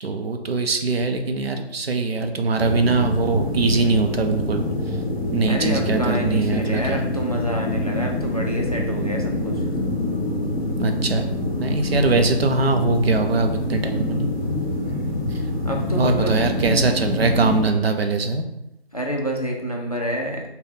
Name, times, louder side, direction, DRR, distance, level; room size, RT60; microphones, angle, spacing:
voice 1, 0.0-4.6 5.3-7.0 10.8-11.3 11.6-14.3 15.9-18.5, right 3 dB, 65° right, 6 dB, 0.6 m, -22 dB
sound 1, 2.5-17.6, left 1 dB, 25° right, 0.9 m, -25 dB
voice 2, 5.4-9.6 15.6-16.3 18.9-20.4, equal, 40° left, 0 dB, 0.4 m, -27 dB
3.8 x 2.2 x 3.4 m, 0.85 s
figure-of-eight pair, 165°, 32 cm